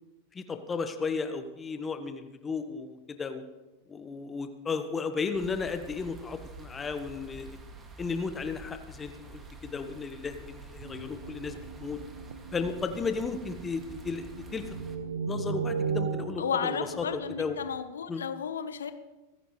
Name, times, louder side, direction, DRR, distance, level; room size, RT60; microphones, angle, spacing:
voice 1, 0.3-3.4 3.9-7.5 8.0-12.0 12.5-14.7 15.3-16.4 17.1-17.5 18.1-18.2, left 5 dB, 15° left, 8 dB, 1.4 m, -34 dB
sound 1, 5.3-15.0, right 2 dB, 20° right, 2.2 m, -48 dB
sound 2, 10.8-17.8, right 6 dB, 60° right, 0.8 m, -37 dB
voice 2, 16.4-18.9, left 7 dB, 65° left, 10 dB, 1.1 m, -33 dB
23.0 x 15.0 x 3.3 m, 1.1 s
figure-of-eight pair, 90°, 0 cm